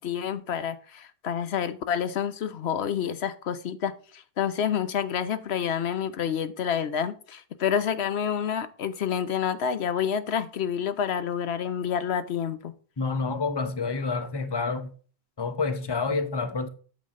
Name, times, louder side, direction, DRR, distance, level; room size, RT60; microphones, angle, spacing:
voice 1, 0.0-12.7, left 8 dB, 85° left, 1.0 m, -28 dB
voice 2, 13.0-14.9 15.4-16.7, left 4 dB, 25° left, 0.9 m, -28 dB
8.7 x 7.3 x 3.7 m
omnidirectional pair, 1.1 m